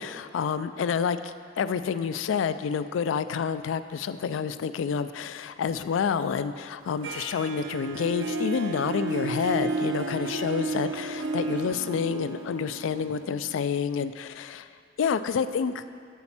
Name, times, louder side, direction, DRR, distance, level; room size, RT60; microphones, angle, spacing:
voice 1, 0.0-14.7 15.0-15.8, left 6 dB, 75° left, 12 dB, 0.3 m, -28 dB
Harp, 7.0-13.9, right 3 dB, 70° right, 0.5 m, -33 dB
8.2 x 4.4 x 7.2 m, 2.3 s
head